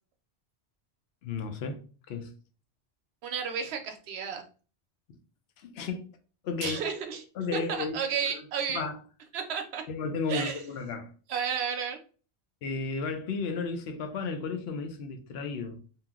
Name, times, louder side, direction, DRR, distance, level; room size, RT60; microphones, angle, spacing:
voice 1, 1.2-2.3 5.1-5.2 5.6-6.0 6.4-6.8 7.4-8.4 8.7-9.0 9.9-11.1 12.6-15.8, left 4 dB, 75° left, 0.8 m, -34 dB
voice 2, 3.2-4.4 6.6-7.2 7.5-8.8 9.3-9.8 10.3-10.6 11.3-12.0, right 7 dB, 75° right, 0.8 m, -32 dB
2.7 x 2.0 x 3.5 m
omnidirectional pair, 1.1 m